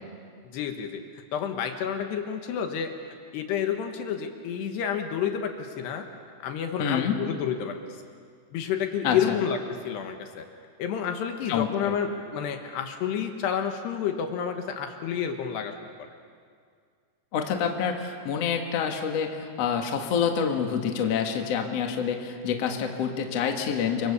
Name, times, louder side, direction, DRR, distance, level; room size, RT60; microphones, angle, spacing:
voice 1, 0.5-1.0 1.3-6.0 6.4-7.8 8.5-9.6 9.8-10.4 10.8-15.9, left 8 dB, 70° left, 5 dB, 3.2 m, -30 dB
voice 2, 6.8-7.2 9.0-9.4 11.5-12.0 17.3-24.1, left 7 dB, 50° left, 3 dB, 2.0 m, -27 dB
29.0 x 24.5 x 7.1 m, 2.1 s
omnidirectional pair, 5.4 m